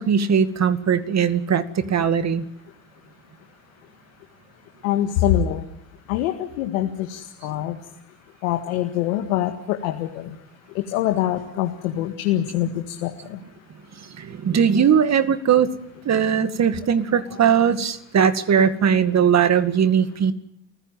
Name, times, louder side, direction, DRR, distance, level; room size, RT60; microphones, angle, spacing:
voice 1, 0.0-2.5 14.2-15.7 16.1-20.3, right 7 dB, 45° right, 10 dB, 2.2 m, -19 dB
voice 2, 4.8-5.6 6.1-7.8 8.4-10.3 10.7-13.4, left 12 dB, 85° left, 4 dB, 2.0 m, -24 dB
29.5 x 15.5 x 9.3 m, 0.79 s
hypercardioid pair, 70°, 38 cm